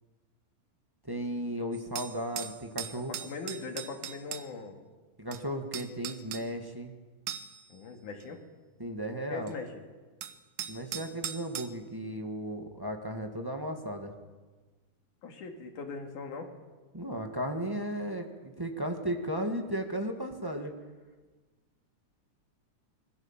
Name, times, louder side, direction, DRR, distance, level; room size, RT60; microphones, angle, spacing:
voice 1, 1.0-3.1 5.2-6.9 8.8-9.5 10.7-14.1 16.9-20.7, equal, 20° right, 3 dB, 0.6 m, -35 dB
sound 1, 1.7-4.4 5.3-5.4 5.7-6.4 7.3-7.7 8.2-8.3 9.5-9.6 10.2-11.7, right 9 dB, 70° right, 1.2 m, -39 dB
voice 2, 2.9-4.8 7.7-8.4 9.3-9.8 15.2-16.5, left 4 dB, 80° left, 4 dB, 3.8 m, -40 dB
25.5 x 21.0 x 7.3 m, 1.3 s
omnidirectional pair, 3.6 m